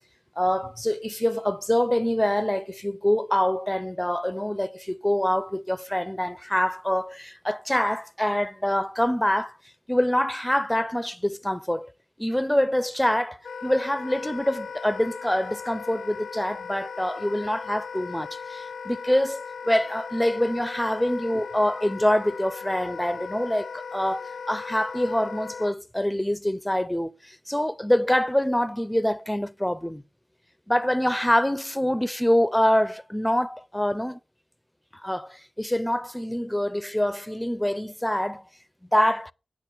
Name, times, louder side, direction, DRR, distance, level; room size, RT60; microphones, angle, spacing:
voice 1, 0.4-9.6 9.9-11.9 12.2-30.0 30.7-34.2 34.9-38.4 38.8-39.3, left 1 dB, 10° left, 0.4 m, -25 dB
Wind instrument woodwind instrument, 13.4-25.7, left 6 dB, 75° left, 0.4 m, -38 dB
8.5 x 4.4 x 6.6 m
cardioid pair, 45°, 0 cm